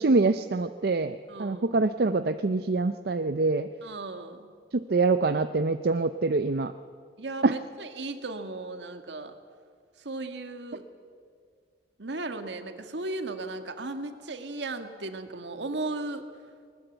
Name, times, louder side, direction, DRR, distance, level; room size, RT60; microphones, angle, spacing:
voice 1, 0.0-3.7 4.7-6.7 7.4-7.6, right 3 dB, 55° right, 10 dB, 0.5 m, -25 dB
voice 2, 1.3-1.7 3.8-4.5 7.2-9.4 10.0-10.9 12.0-16.2, right 2 dB, 75° right, 7 dB, 1.7 m, -36 dB
20.0 x 19.0 x 8.0 m, 2.1 s
head